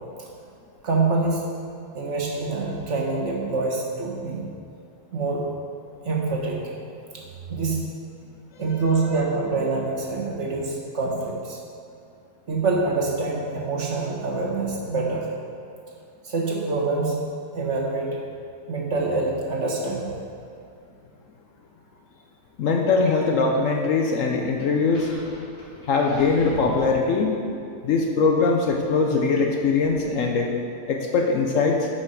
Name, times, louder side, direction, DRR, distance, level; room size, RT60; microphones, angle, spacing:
voice 1, 0.8-1.4 1.9-4.5 5.1-5.5 6.0-6.8 7.1-7.8 8.6-11.6 12.5-15.3 16.2-17.2 17.5-18.2 18.7-20.2, right 3 dB, 50° right, -2 dB, 1.3 m, -25 dB
voice 2, 22.6-25.1 25.8-27.4 27.8-30.5 30.9-31.9, left 4 dB, 65° left, 1 dB, 0.9 m, -21 dB
sound 1, 24.7-27.5, equal, 80° left, 2.7 m, -40 dB
8.3 x 5.2 x 5.1 m, 2.5 s
omnidirectional pair, 1.7 m